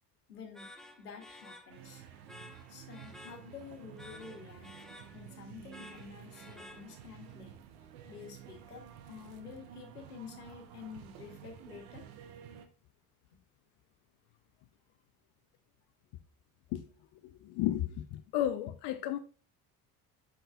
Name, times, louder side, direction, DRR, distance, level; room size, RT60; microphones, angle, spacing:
voice 1, 0.3-0.7 1.0-2.0 2.7-4.8 5.1-7.5 8.1-12.0, left 6 dB, 90° left, 1.3 m, -49 dB
sound 1, 0.5-7.3, left 1 dB, ahead, 1.1 m, -54 dB
sound 2, 1.7-12.7, right 10 dB, 70° right, 1.0 m, -52 dB
voice 2, 17.2-19.2, left 12 dB, 60° left, 0.7 m, -33 dB
7.8 x 6.4 x 2.4 m
hypercardioid pair, 55°, 45 cm